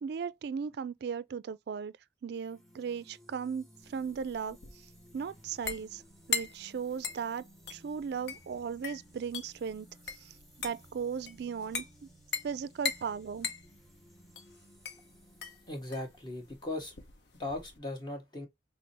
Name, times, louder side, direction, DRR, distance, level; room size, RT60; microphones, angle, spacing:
voice 1, 0.0-1.9 2.2-4.6 5.1-6.0 6.3-7.4 7.7-9.9 10.6-11.8 12.4-13.5, right 6 dB, 60° right, 0.3 m, -36 dB
sound 1, 2.3-17.0, right 1 dB, ahead, 0.9 m, -59 dB
sound 2, 3.8-17.8, left 5 dB, 65° left, 0.7 m, -40 dB
voice 2, 15.7-16.9 17.3-18.5, left 2 dB, 25° left, 1.3 m, -38 dB
5.9 x 2.0 x 2.8 m
head